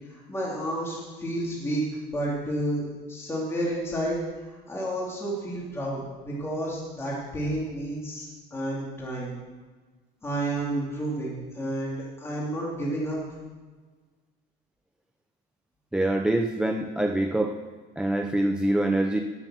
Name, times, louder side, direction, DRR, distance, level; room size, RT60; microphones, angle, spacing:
voice 1, 0.3-4.2 4.7-9.3 10.2-13.2, right 1 dB, 15° left, -5 dB, 2.8 m, -30 dB
voice 2, 15.9-17.6 18.0-19.2, right 1 dB, 5° right, 3 dB, 0.5 m, -25 dB
18.5 x 7.2 x 6.3 m, 1.4 s
cardioid pair, 165°, 19 cm